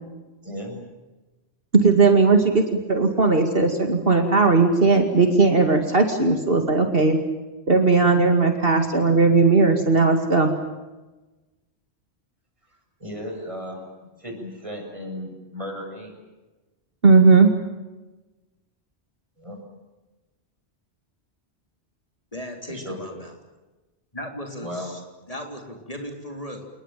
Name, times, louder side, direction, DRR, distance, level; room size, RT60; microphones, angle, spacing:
voice 1, 0.4-0.8 13.0-16.1 19.4-19.6 22.7-23.2 24.6-25.0, equal, 30° right, 2 dB, 7.4 m, -35 dB
voice 2, 1.7-7.2 7.7-10.5 17.0-17.5, right 4 dB, 55° right, 5 dB, 2.5 m, -17 dB
voice 3, 22.3-23.3 24.1-25.0 25.3-26.7, equal, 35° left, 3 dB, 3.9 m, -36 dB
28.5 x 20.5 x 9.2 m, 1.1 s
omnidirectional pair, 1.1 m